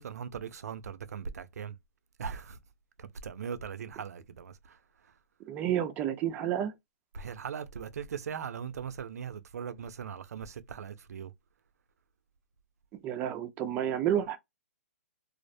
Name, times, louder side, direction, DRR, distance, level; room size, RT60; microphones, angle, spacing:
voice 1, 0.0-1.8 2.2-2.6 3.0-4.8 5.0-5.1 7.1-11.3, right 7 dB, 90° right, 0.4 m, -39 dB
voice 2, 5.5-6.7 13.0-14.4, right 10 dB, 20° right, 0.4 m, -30 dB
2.4 x 2.0 x 2.5 m
hypercardioid pair, 155°, 8 cm